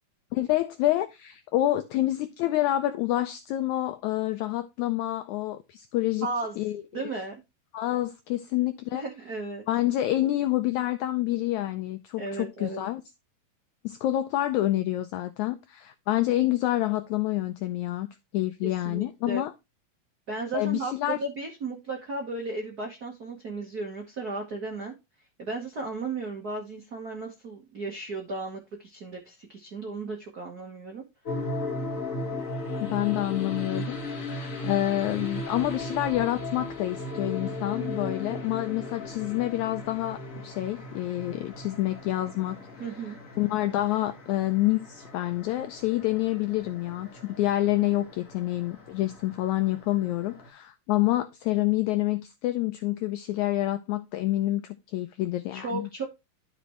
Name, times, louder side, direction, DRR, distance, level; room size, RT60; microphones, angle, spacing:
voice 1, 0.3-6.3 6.6-6.8 7.7-9.0 9.7-13.0 13.8-18.1 18.3-19.5 20.5-21.2 32.8-42.8 43.4-55.9, left 15 dB, 85° left, 1.6 m, -28 dB
voice 2, 6.2-6.6 6.9-7.4 8.9-9.7 12.2-12.8 18.6-19.4 20.3-20.9 21.2-24.9 25.4-31.0 42.8-43.2 55.5-56.0, right 3 dB, 75° right, 0.8 m, -35 dB
sound 1, 31.3-50.5, left 2 dB, 45° left, 1.0 m, -37 dB
12.0 x 5.1 x 3.1 m
omnidirectional pair, 3.9 m